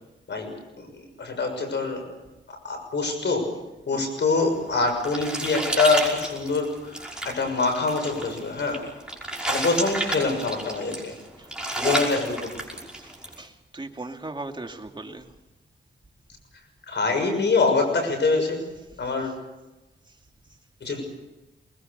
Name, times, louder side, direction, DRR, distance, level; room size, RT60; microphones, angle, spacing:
voice 1, 0.3-2.0 2.5-3.5 3.9-8.8 9.5-11.1 11.8-12.5 16.9-18.6 19.0-19.3 20.8-21.0, left 3 dB, 70° left, 5 dB, 6.5 m, -25 dB
sound 1, 4.5-13.4, right 1 dB, 5° right, 5.7 m, -31 dB
voice 2, 11.1-11.8 12.9-15.3, right 2 dB, 25° right, 4 dB, 2.4 m, -39 dB
23.5 x 21.0 x 6.7 m, 1.1 s
cardioid pair, 65°, 19 cm